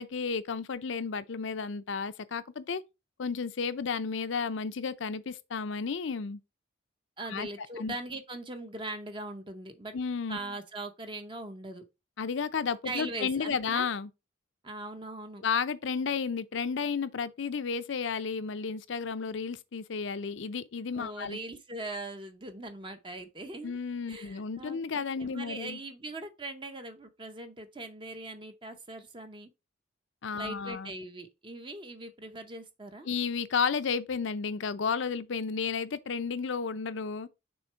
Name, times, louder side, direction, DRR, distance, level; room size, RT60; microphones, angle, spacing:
voice 1, 0.0-2.8 3.2-6.4 7.3-7.5 7.8-7.9 9.9-10.4 12.2-14.1 15.4-21.4 23.6-25.8 30.2-30.9 33.1-37.3, left 5 dB, 70° left, 0.5 m, -32 dB
voice 2, 7.2-9.9 10.3-11.8 12.8-13.9 14.6-15.4 20.9-23.8 24.1-29.5 30.3-33.1, right 2 dB, 25° right, 0.6 m, -41 dB
6.3 x 3.7 x 4.4 m
head